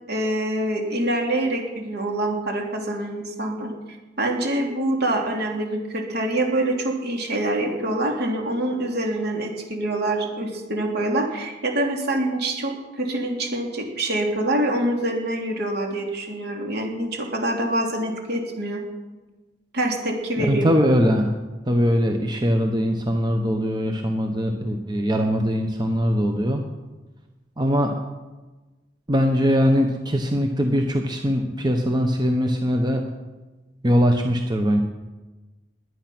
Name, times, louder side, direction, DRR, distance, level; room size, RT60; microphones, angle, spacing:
voice 1, 0.1-18.8 19.7-20.7, right 1 dB, 60° right, 1 dB, 3.2 m, -25 dB
voice 2, 20.5-21.3 21.7-26.6 27.6-27.9 29.1-33.0 33.8-34.8, equal, 25° right, 4 dB, 1.1 m, -21 dB
21.0 x 9.8 x 6.2 m, 1.2 s
head